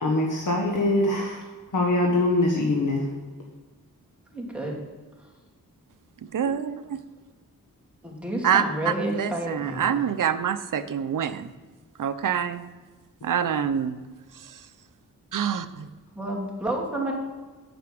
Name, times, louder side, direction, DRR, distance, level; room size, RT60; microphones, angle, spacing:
voice 1, 0.0-1.4 1.7-3.1, left 2 dB, 65° left, -1 dB, 1.4 m, -23 dB
voice 2, 4.3-4.7 8.0-10.0 16.2-17.1, right 1 dB, 5° right, -3 dB, 2.7 m, -30 dB
voice 3, 6.3-7.0 8.4-11.5 12.0-12.6 13.2-14.0 14.5-14.6 15.3-15.9, right 8 dB, 65° right, 11 dB, 0.7 m, -26 dB
9.1 x 7.0 x 7.8 m, 1.3 s
wide cardioid pair, 140°, 34 cm